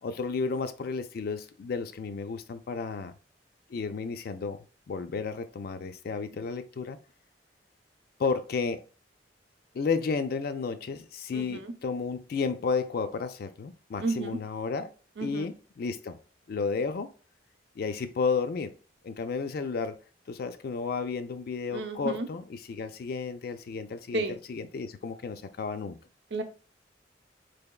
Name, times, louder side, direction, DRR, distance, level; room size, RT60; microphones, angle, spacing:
voice 1, 0.0-3.1 3.7-7.0 8.2-8.8 9.7-14.9 15.2-16.2 16.5-17.1 17.8-18.7 19.0-20.0 20.3-24.2 24.5-26.0, left 5 dB, 55° left, 0.4 m, -32 dB
voice 2, 11.3-11.7 14.0-14.4 15.2-15.5 21.7-22.3 24.1-24.4 26.3-26.4, right 2 dB, 80° right, 0.6 m, -32 dB
3.7 x 3.4 x 2.3 m
head